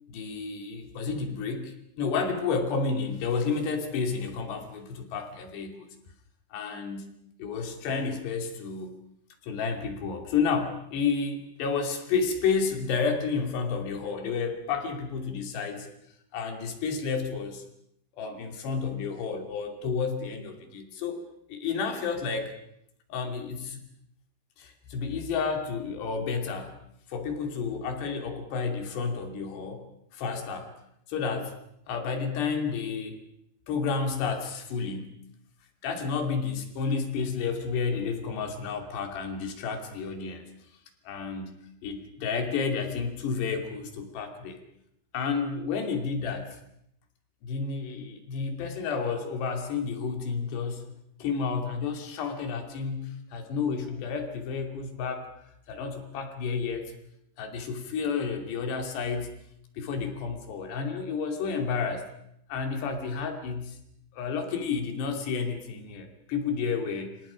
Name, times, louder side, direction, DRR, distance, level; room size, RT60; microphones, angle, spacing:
voice 1, 0.1-5.9 6.5-7.1 7.4-8.9 9.4-15.9 16.3-17.6 18.1-21.2 21.5-22.5 23.1-23.8 24.6-26.7 27.1-29.9 30.1-30.7 31.1-31.6 31.9-33.2 33.7-35.2 35.8-40.4 41.1-41.6 41.8-44.6 45.1-46.6 47.4-50.9 51.2-55.3 55.7-56.9 57.4-59.4 59.8-62.0 62.5-63.8 64.1-67.2, left 5 dB, 70° left, 4 dB, 4.9 m, -31 dB
29.0 x 26.5 x 5.2 m, 0.74 s
omnidirectional pair, 5.1 m